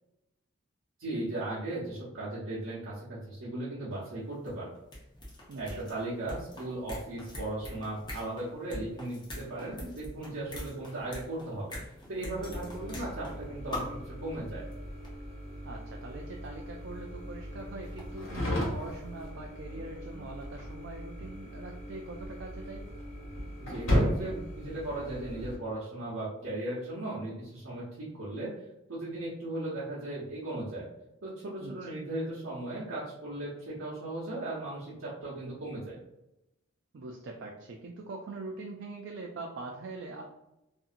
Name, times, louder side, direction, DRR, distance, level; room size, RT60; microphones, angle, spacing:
voice 1, 1.0-4.7 5.6-11.7 12.1-14.6 23.6-28.5 28.9-30.9 31.2-36.0, right 2 dB, 75° right, -9 dB, 0.8 m, -37 dB
sound 1, 4.0-4.1 4.3-13.4 13.7-14.1 14.7-14.8 15.0-15.1 16.4-16.5 17.6-19.0 19.3-19.4, left 1 dB, 20° left, 0.6 m, -43 dB
voice 2, 5.5-5.8 15.6-22.9 31.6-31.9 36.9-40.2, right 2 dB, 60° right, 1 dB, 0.3 m, -43 dB
sound 2, 12.3-25.6, equal, 75° left, 1.2 m, -36 dB
2.8 x 2.6 x 2.5 m, 0.89 s
head